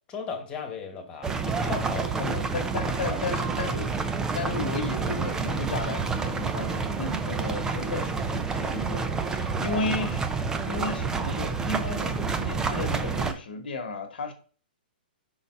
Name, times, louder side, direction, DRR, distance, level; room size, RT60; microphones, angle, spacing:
voice 1, 0.1-2.3 2.8-3.2, left 5 dB, 20° left, 1.3 m, -36 dB
sound 1, 1.2-13.3, right 4 dB, 10° right, 0.5 m, -29 dB
voice 2, 2.2-3.9 4.3-10.3 10.7-14.3, left 3 dB, 80° left, 1.2 m, -34 dB
5.6 x 4.0 x 4.5 m
hypercardioid pair, 140°, 5 cm